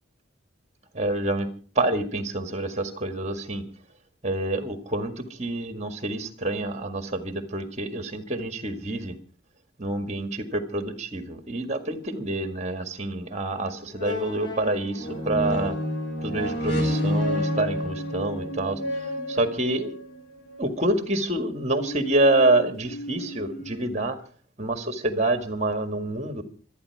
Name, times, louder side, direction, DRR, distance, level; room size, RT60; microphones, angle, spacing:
voice 1, 0.9-1.5 1.8-3.6 4.2-9.1 9.8-15.7 16.2-18.8 19.3-19.9 20.6-24.2 24.6-26.4, right 2 dB, 35° right, 8 dB, 1.8 m, -27 dB
sound 1, 13.5-13.6 13.9-19.9 20.5-20.6, equal, 65° left, 5.1 m, -29 dB
sound 2, 15.0-16.1 16.7-20.7 21.6-24.0, equal, 90° left, 3.1 m, -39 dB
26.0 x 9.5 x 4.7 m, 0.42 s
head